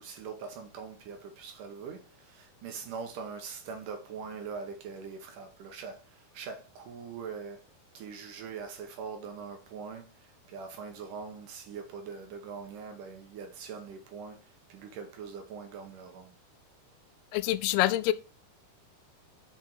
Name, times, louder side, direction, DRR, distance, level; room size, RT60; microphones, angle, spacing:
voice 1, 0.0-7.6 7.9-16.4, right 5 dB, 70° right, 2.3 m, -42 dB
voice 2, 17.3-18.1, left 15 dB, 90° left, 2.6 m, -26 dB
5.9 x 5.8 x 4.6 m
omnidirectional pair, 4.4 m